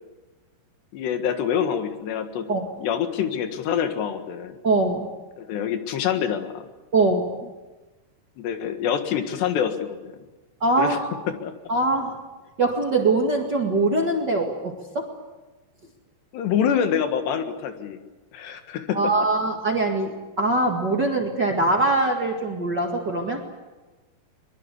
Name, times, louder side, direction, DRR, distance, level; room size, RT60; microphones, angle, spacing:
voice 1, 0.9-2.5 2.8-4.5 5.4-6.7 8.4-10.2 10.8-11.0 11.3-11.5 16.3-18.0 18.3-19.1, left 8 dB, 85° left, 7 dB, 3.9 m, -26 dB
voice 2, 4.6-5.1 6.9-7.4 10.6-11.0 11.7-12.2 12.6-15.1 18.9-23.4, right 2 dB, 40° right, 1 dB, 1.7 m, -22 dB
23.0 x 22.5 x 8.3 m, 1.2 s
omnidirectional pair, 4.8 m